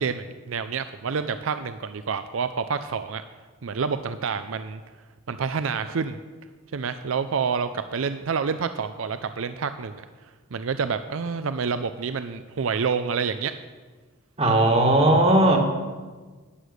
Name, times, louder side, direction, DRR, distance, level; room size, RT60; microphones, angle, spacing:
voice 1, 0.0-3.2 3.6-4.8 5.3-6.2 6.7-10.1 10.5-13.5, right 5 dB, 70° right, 11 dB, 0.5 m, -28 dB
voice 2, 14.4-15.6, right 1 dB, 30° right, 3 dB, 1.6 m, -18 dB
11.5 x 9.5 x 6.6 m, 1.4 s
head